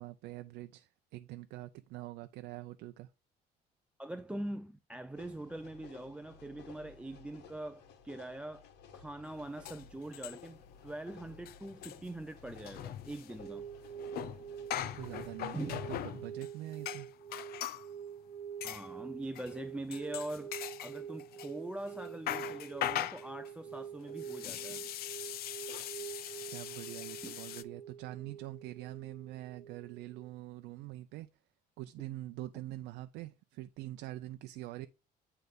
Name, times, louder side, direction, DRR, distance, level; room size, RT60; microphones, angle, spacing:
voice 1, 0.0-3.1 14.8-17.1 26.5-31.3 31.8-34.9, right 16 dB, 85° right, 0.5 m, -44 dB
voice 2, 4.0-8.6 8.9-13.6 15.5-15.7 18.6-20.5 20.8-24.8 27.2-27.3, right 1 dB, 5° right, 0.5 m, -43 dB
sound 1, 5.2-15.9, left 6 dB, 85° left, 1.6 m, -56 dB
sound 2, 9.3-9.4 9.6-10.7 10.9-11.1 11.3-17.9 18.6-18.9 19.3-19.6 19.9-21.5 21.9-27.6, left 12 dB, 65° left, 0.6 m, -41 dB
sound 3, 13.4-30.3, right 8 dB, 10° left, 1.8 m, -46 dB
9.3 x 3.4 x 5.2 m
cardioid pair, 110°, 17 cm